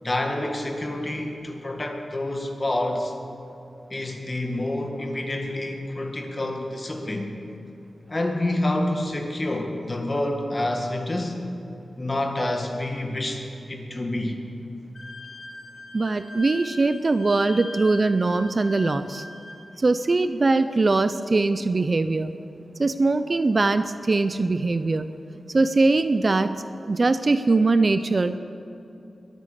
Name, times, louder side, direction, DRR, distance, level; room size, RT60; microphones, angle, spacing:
voice 1, 0.0-3.1 3.9-7.3 8.1-11.4 12.0-14.4, left 1 dB, 30° left, 3 dB, 1.9 m, -28 dB
Wind instrument woodwind instrument, 14.9-19.6, left 1 dB, 60° left, 4.0 m, -41 dB
voice 2, 15.9-19.2 19.8-22.3 22.8-25.1 25.5-26.5 26.8-28.4, right 3 dB, 40° right, 11 dB, 0.6 m, -21 dB
22.0 x 9.1 x 6.7 m, 2.7 s
wide cardioid pair, 95°, 0 cm